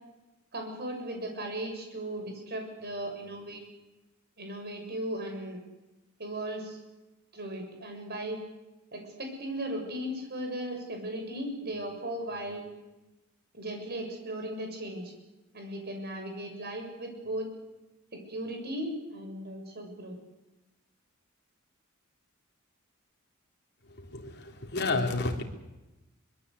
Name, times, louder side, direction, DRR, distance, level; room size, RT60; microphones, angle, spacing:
voice 1, 0.5-3.6 4.4-5.6 6.2-6.8 7.3-8.4 8.9-12.6 13.5-15.1 15.5-17.5 18.1-20.1, right 1 dB, 50° right, 3 dB, 6.6 m, -37 dB
voice 2, 24.7-25.4, left 3 dB, 55° left, 3 dB, 3.3 m, -28 dB
24.0 x 22.0 x 8.3 m, 1.0 s
head